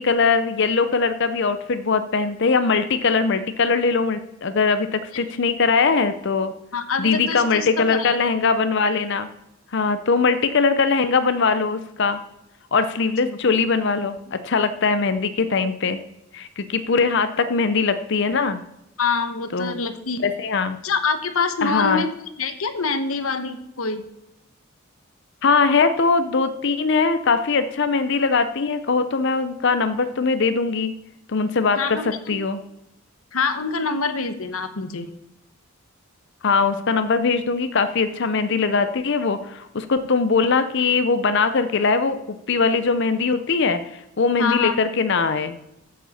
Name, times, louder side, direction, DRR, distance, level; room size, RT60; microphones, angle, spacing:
voice 1, 0.0-6.5 7.0-9.3 9.7-12.2 12.7-16.0 16.3-18.6 19.5-19.8 20.2-20.8 21.6-22.0 25.4-30.9 31.3-32.6 36.4-42.2 42.5-45.6, left 4 dB, 55° left, 11 dB, 0.6 m, -21 dB
voice 2, 6.7-8.1 13.0-13.4 19.0-20.2 20.8-22.1 22.4-24.0 31.7-32.4 33.3-35.1 44.4-44.8, left 4 dB, 75° left, 10 dB, 1.1 m, -25 dB
14.0 x 7.5 x 4.2 m, 0.88 s
head